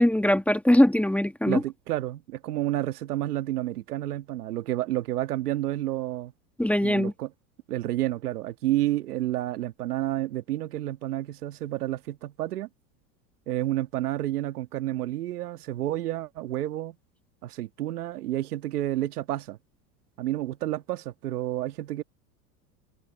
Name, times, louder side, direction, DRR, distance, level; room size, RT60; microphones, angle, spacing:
voice 1, 0.0-1.6 6.6-7.1, left 1 dB, 5° left, 1.6 m, -21 dB
voice 2, 1.5-6.3 6.8-7.3 7.7-12.7 13.5-17.0 17.4-19.6 20.2-22.0, right 14 dB, 85° right, 1.9 m, -30 dB
open air
hypercardioid pair, 100°, 44 cm